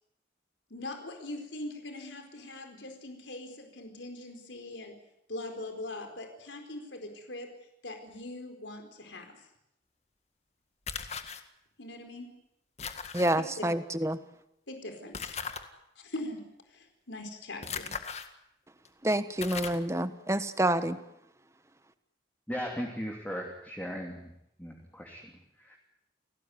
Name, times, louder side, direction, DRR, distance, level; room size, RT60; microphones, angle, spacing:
voice 1, 0.7-4.9 5.3-7.5 7.8-9.5 11.8-12.3 14.7-15.3 16.0-16.4 16.7-17.9, left 2 dB, 85° left, 5 dB, 4.5 m, -41 dB
sound 1, 10.9-11.4 12.8-13.3 15.1-15.6 17.6-18.3 18.8-18.9 19.4-19.9, left 6 dB, 35° left, 1.9 m, -37 dB
voice 2, 13.1-14.2 19.0-21.0, right 1 dB, 15° right, 11 dB, 1.3 m, -28 dB
voice 3, 22.5-24.3 24.6-25.8, equal, 10° left, 0 dB, 3.1 m, -38 dB
29.5 x 18.5 x 9.6 m, 0.82 s
head